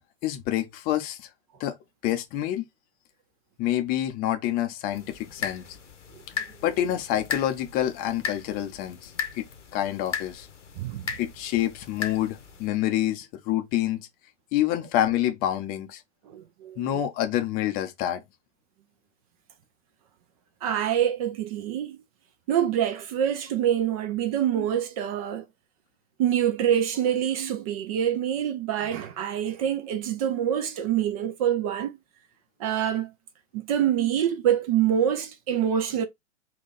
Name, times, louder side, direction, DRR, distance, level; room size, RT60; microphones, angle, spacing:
voice 1, 0.2-1.3 1.6-1.7 2.0-2.6 3.6-5.6 6.6-9.1 9.4-9.5 9.7-10.5 11.2-14.1 14.5-16.0 16.8-18.2, left 12 dB, 25° left, 0.5 m, -27 dB
sound 1, 4.9-12.7, left 6 dB, 85° left, 1.0 m, -37 dB
voice 2, 10.8-11.1 16.3-17.0 20.6-22.0 22.5-25.4 26.2-31.9 32.6-33.1 33.5-36.1, right 10 dB, 30° right, 0.4 m, -26 dB
3.7 x 2.3 x 3.7 m
figure-of-eight pair, 110°, 35 cm